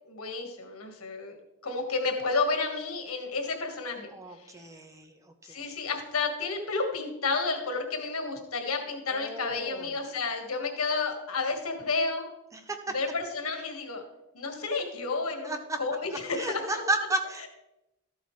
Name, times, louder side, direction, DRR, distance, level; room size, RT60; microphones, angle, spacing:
voice 1, 0.0-4.1 5.5-12.3 12.9-14.0 14.3-16.8, left 4 dB, 80° left, 4 dB, 1.7 m, -31 dB
voice 2, 4.1-5.1 9.1-9.9 12.5-12.9 15.4-15.8 16.3-17.5, right 1 dB, 15° right, 6 dB, 0.8 m, -33 dB
13.0 x 8.2 x 3.2 m, 0.93 s
head